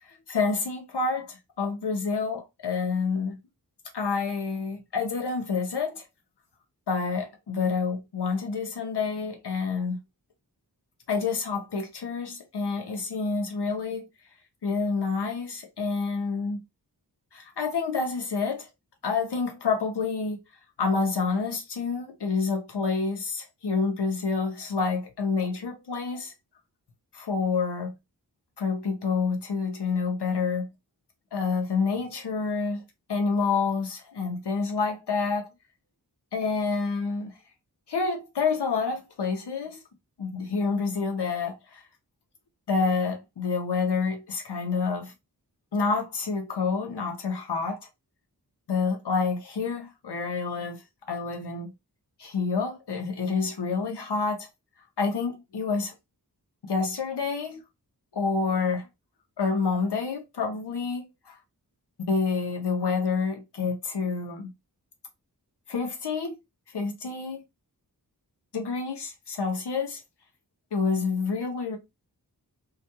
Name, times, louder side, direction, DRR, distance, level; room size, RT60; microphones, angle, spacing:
voice 1, 0.1-3.4 3.9-6.0 6.9-10.0 11.1-14.1 14.6-16.6 17.3-18.7 19.0-20.4 20.8-26.3 27.1-27.9 28.6-30.7 31.3-32.8 33.1-35.5 36.3-37.3 37.9-39.8 40.2-41.8 42.7-45.1 45.7-47.8 48.7-51.7 52.2-54.5 55.0-55.9 56.7-57.6 58.1-58.9 59.4-61.3 62.1-64.5 65.7-66.3 66.7-67.4 68.5-70.0 70.7-71.8, left 4 dB, 85° left, 0.8 m, -28 dB
2.4 x 2.2 x 2.7 m
wide cardioid pair, 70°, 39 cm